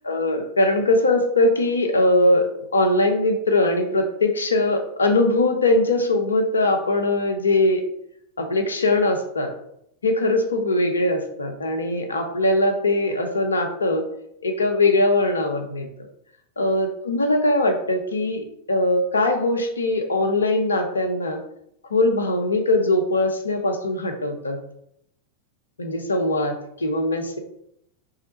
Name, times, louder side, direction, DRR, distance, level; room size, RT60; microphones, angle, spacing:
voice 1, 0.1-2.4 2.7-7.8 8.4-9.5 10.0-14.0 14.4-15.9 16.6-21.4 21.9-24.6 25.8-26.6 26.8-27.4, left 2 dB, 75° left, 4 dB, 0.6 m, -21 dB
3.8 x 3.3 x 4.1 m, 0.74 s
figure-of-eight pair, 90°, 0 cm